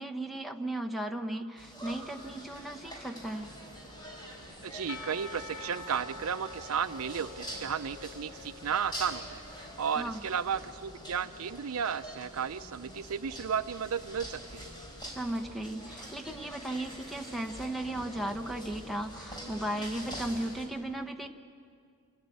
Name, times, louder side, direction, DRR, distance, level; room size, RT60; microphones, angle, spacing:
voice 1, 0.0-3.5 9.9-10.3 15.1-21.3, right 1 dB, ahead, 5 dB, 0.9 m, -36 dB
sound 1, 1.6-20.7, equal, 20° left, 4.3 m, -45 dB
voice 2, 4.6-9.4 9.8-14.7, right 7 dB, 75° right, 12 dB, 0.5 m, -33 dB
Percussion / Church bell, 4.9-9.9, left 3 dB, 75° left, 1.1 m, -47 dB
27.0 x 13.5 x 9.2 m, 2.3 s
head